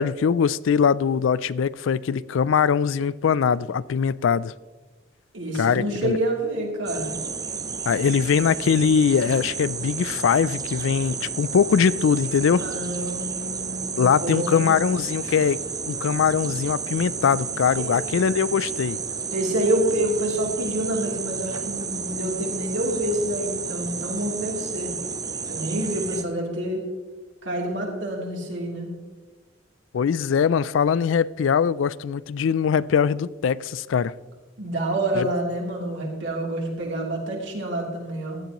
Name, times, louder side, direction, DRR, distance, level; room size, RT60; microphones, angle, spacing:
voice 1, 0.0-4.5 5.5-6.2 7.9-12.6 14.0-15.6 15.9-19.0 29.9-34.1 35.1-35.3, left 7 dB, 70° left, 0.3 m, -22 dB
voice 2, 5.3-7.2 12.6-14.8 19.3-24.9 25.5-26.8 27.4-28.9 34.6-38.4, right 1 dB, 65° right, 3.1 m, -27 dB
sound 1, 6.9-26.2, right 5 dB, 20° right, 0.5 m, -32 dB
16.0 x 11.5 x 3.0 m
head